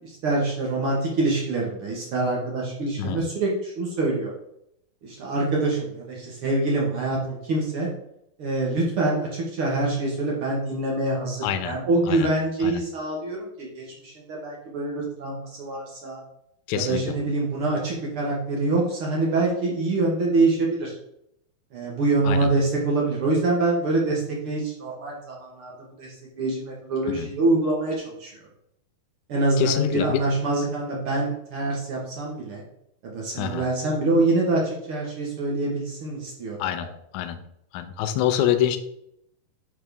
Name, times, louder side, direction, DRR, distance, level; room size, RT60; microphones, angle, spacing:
voice 1, 0.0-4.3 5.0-7.9 8.4-16.2 16.7-20.9 21.7-28.3 29.3-32.6 33.0-36.8, right 2 dB, 60° right, -3 dB, 1.5 m, -25 dB
voice 2, 11.4-11.8 12.1-12.3 12.6-12.8 16.7-17.1 22.2-22.5 27.1-27.3 29.6-30.2 33.3-33.7 36.6-36.9 37.1-37.4 37.7-38.8, left 10 dB, 85° left, 8 dB, 1.7 m, -26 dB
10.5 x 3.7 x 3.4 m, 0.76 s
omnidirectional pair, 4.2 m